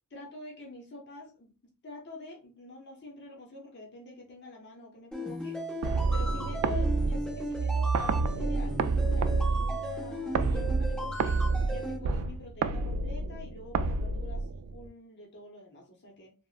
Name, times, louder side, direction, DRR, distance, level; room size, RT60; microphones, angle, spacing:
voice 1, 0.1-1.5 1.8-5.6 6.1-11.4 11.6-16.3, left 2 dB, 50° left, 0 dB, 0.7 m, -46 dB
sound 1, 5.1-12.0, equal, 5° left, 0.8 m, -37 dB
sound 2, 5.8-14.9, right 4 dB, 75° right, 0.3 m, -29 dB
3.4 x 2.0 x 2.4 m, 0.33 s
head